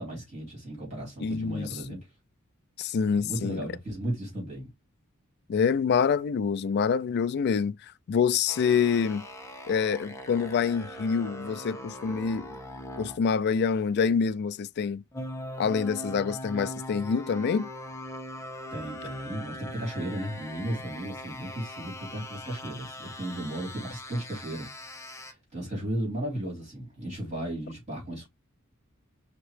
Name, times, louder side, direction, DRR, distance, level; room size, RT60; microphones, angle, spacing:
voice 1, 0.0-2.1 3.2-4.7 18.7-24.7 25.2-28.3, right 1 dB, 30° right, 3.5 m, -35 dB
voice 2, 1.2-1.7 2.8-3.7 5.5-7.8 8.1-9.3 9.7-12.5 13.0-15.0 15.6-17.7, left 6 dB, 50° left, 0.3 m, -26 dB
sound 1, 8.5-13.2 15.1-25.3, left 1 dB, 15° left, 0.8 m, -41 dB
5.4 x 3.0 x 3.2 m
head